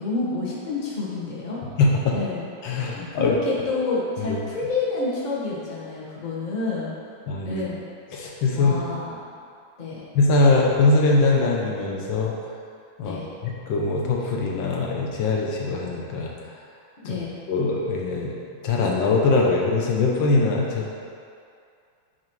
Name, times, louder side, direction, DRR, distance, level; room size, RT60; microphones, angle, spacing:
voice 1, 0.0-1.6 2.1-6.9 7.4-7.8 8.5-9.3 9.8-10.0 13.0-13.3 17.0-17.3, left 3 dB, 30° left, -6 dB, 1.1 m, -29 dB
voice 2, 1.8-2.2 2.6-3.3 4.3-4.4 7.3-7.6 8.1-8.7 10.1-12.3 13.0-16.3 17.0-17.1 17.5-18.3 18.6-20.9, left 3 dB, 75° left, -2 dB, 1.4 m, -22 dB
8.8 x 3.1 x 4.5 m, 2.3 s
omnidirectional pair, 2.1 m